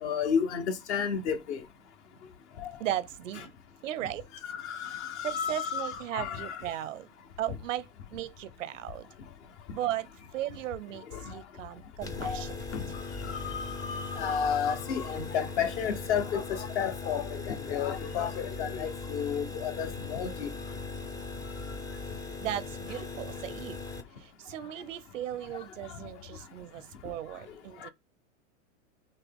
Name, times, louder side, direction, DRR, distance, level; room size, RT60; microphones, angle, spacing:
voice 1, 0.0-1.6 2.6-2.7 3.3-3.4 4.4-6.6 11.1-11.3 12.2-12.4 12.7-12.9 13.2-20.5 27.8-27.9, left 7 dB, 65° left, 1.3 m, -32 dB
voice 2, 2.8-3.5 3.8-4.3 5.2-7.1 7.4-7.9 8.1-9.1 9.7-10.1 10.3-12.6 22.4-23.8 24.2-27.9, right 12 dB, 85° right, 0.6 m, -36 dB
sound 1, 12.0-24.0, left 3 dB, 10° left, 0.4 m, -39 dB
6.1 x 2.2 x 3.6 m
hypercardioid pair, 115°, 37 cm